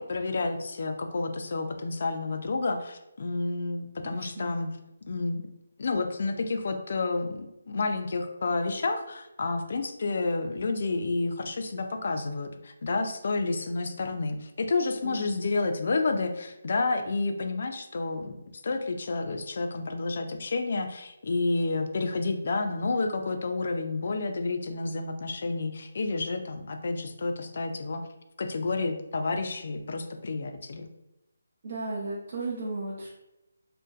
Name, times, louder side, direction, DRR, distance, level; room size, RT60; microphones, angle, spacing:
voice 1, 0.0-4.7 5.1-5.4 5.8-18.4 18.6-28.0 28.4-30.9, left 3 dB, 55° left, 6 dB, 0.3 m, -30 dB
voice 2, 4.1-4.5 15.0-15.2 31.6-33.1, right 2 dB, 45° right, -6 dB, 0.6 m, -35 dB
2.6 x 2.1 x 2.3 m, 0.91 s
figure-of-eight pair, 160°, 0 cm